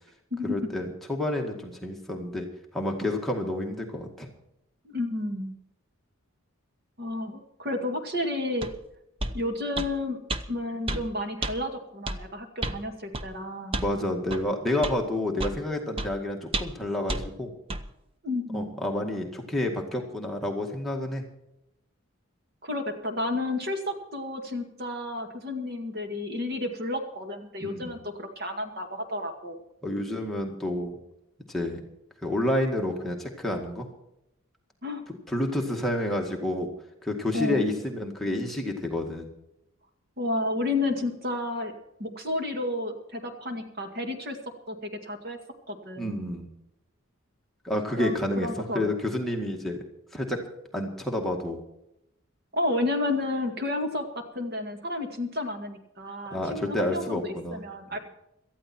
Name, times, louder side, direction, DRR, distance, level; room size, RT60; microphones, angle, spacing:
voice 1, 0.4-2.5 2.7-4.3 13.8-17.5 18.5-21.2 27.6-28.0 29.8-31.0 31.5-31.8 32.2-33.9 35.3-36.7 37.0-39.3 46.0-46.5 47.6-49.8 50.1-50.4 50.7-51.6 56.3-57.6 57.9-58.0, left 1 dB, ahead, 0 dB, 2.0 m, -29 dB
voice 2, 4.8-5.5 7.0-8.7 9.3-10.2 10.5-13.9 18.2-18.7 22.6-29.6 34.8-35.0 37.3-37.7 40.2-41.7 42.0-44.4 44.7-45.4 45.7-46.2 48.0-48.9 52.5-58.0, left 2 dB, 45° right, 4 dB, 2.1 m, -31 dB
sound 1, 8.6-8.7 9.2-9.4 9.8-9.9 10.3-10.4 10.9-11.0 11.4-11.5 12.1-12.2 12.6-12.8 13.1-13.3 13.7-13.9 14.3-14.4 14.8-15.0 15.4-15.6 16.0-16.1 16.5-16.8 17.1-17.2 17.7-17.8, right 2 dB, 25° right, 0.8 m, -30 dB
18.5 x 13.5 x 4.5 m, 0.82 s
head